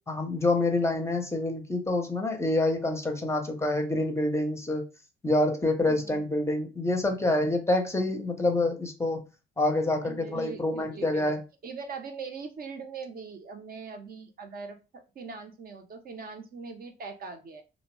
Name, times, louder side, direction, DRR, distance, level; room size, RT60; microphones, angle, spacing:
voice 1, 0.1-4.8 5.2-9.2 9.6-11.4, left 2 dB, 15° left, 0.5 m, -27 dB
voice 2, 5.9-6.2 10.0-11.3 11.6-14.8 15.2-17.6, right 5 dB, 50° right, 0.5 m, -41 dB
2.5 x 2.0 x 3.0 m
cardioid pair, 90°, 20 cm